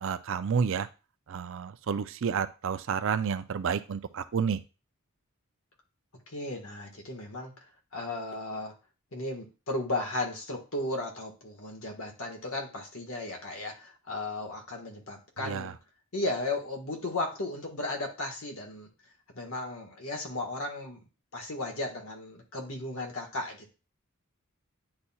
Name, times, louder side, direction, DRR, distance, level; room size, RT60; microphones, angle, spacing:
voice 1, 0.0-0.9 1.3-4.6 15.4-15.7, right 6 dB, 60° right, 11 dB, 0.4 m, -30 dB
voice 2, 6.3-7.5 7.9-8.7 9.1-15.7 16.1-18.9 19.3-21.0 21.3-23.7, left 2 dB, 65° left, 3 dB, 1.5 m, -35 dB
9.7 x 4.2 x 2.3 m, 0.30 s
head